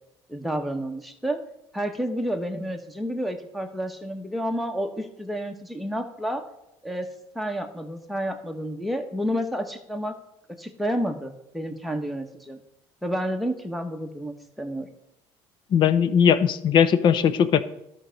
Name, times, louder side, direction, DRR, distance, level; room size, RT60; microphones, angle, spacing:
voice 1, 0.3-1.4 1.7-6.4 6.8-7.1 7.3-10.2 10.6-12.6 13.0-14.9, equal, ahead, 6 dB, 1.2 m, -30 dB
voice 2, 15.7-17.6, left 8 dB, 50° left, 14 dB, 0.7 m, -19 dB
12.0 x 4.6 x 6.4 m, 0.84 s
cardioid pair, 110°, 10 cm